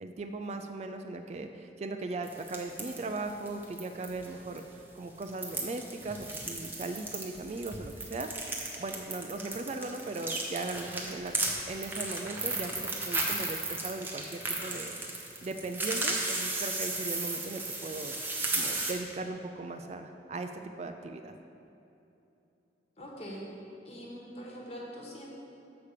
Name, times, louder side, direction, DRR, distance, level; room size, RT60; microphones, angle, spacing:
voice 1, 0.0-8.3 8.7-11.3 11.7-15.0 15.4-18.2 18.5-21.3, right 3 dB, 40° right, 6 dB, 0.3 m, -38 dB
sound 1, 2.2-4.3 4.5-4.6 5.2-18.9, right 2 dB, 10° right, 0.8 m, -35 dB
voice 2, 23.0-23.5 23.8-25.3, equal, 35° left, -2 dB, 1.3 m, -43 dB
7.0 x 4.9 x 6.5 m, 2.8 s
head